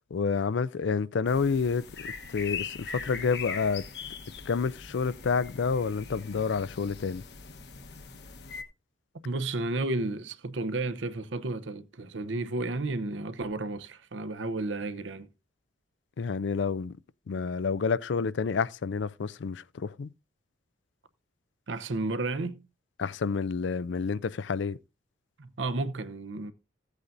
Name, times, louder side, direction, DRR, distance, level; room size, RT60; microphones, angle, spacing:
voice 1, 0.1-3.9 4.5-7.2 16.2-17.0 17.3-20.1 23.0-24.8, left 5 dB, 75° left, 0.4 m, -29 dB
sound 1, 1.3-8.6, left 5 dB, 60° left, 1.1 m, -41 dB
voice 2, 9.2-15.3 21.7-22.6 25.4-26.5, right 2 dB, 80° right, 0.8 m, -32 dB
15.5 x 8.3 x 2.6 m
head